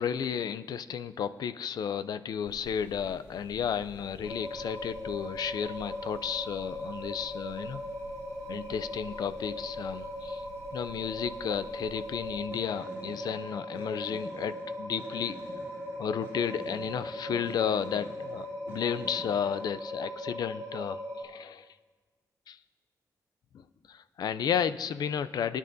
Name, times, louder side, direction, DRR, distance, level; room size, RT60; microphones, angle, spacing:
voice 1, 0.0-7.8 8.5-10.4 10.7-15.4 16.0-21.7 22.5-22.6 23.5-25.6, left 8 dB, 75° left, 13 dB, 0.4 m, -33 dB
sound 1, 2.5-19.9, right 2 dB, 35° right, 2.5 m, -51 dB
sound 2, 4.2-21.2, equal, 40° left, 2.8 m, -39 dB
22.5 x 9.9 x 2.7 m, 1.4 s
wide cardioid pair, 155°, 7 cm